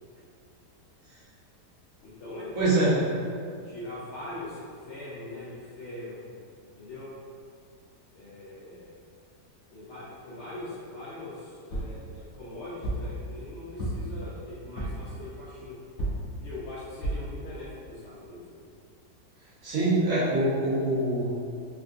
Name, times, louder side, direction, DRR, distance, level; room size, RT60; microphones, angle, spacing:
voice 1, 2.0-3.1 3.6-6.2 6.7-7.2 8.1-9.0 9.7-15.8 16.4-18.6, left 2 dB, 75° left, -9 dB, 0.6 m, -41 dB
voice 2, 2.5-2.9 19.6-21.3, right 2 dB, 65° right, -10 dB, 1.4 m, -24 dB
sound 1, 11.7-12.0 12.8-13.1 13.8-14.2 14.8-15.1 16.0-16.3 17.0-17.3 17.9-18.0 18.2-18.3, right 1 dB, 40° left, 1.0 m, -31 dB
3.6 x 2.5 x 2.3 m, 2.3 s
omnidirectional pair, 1.8 m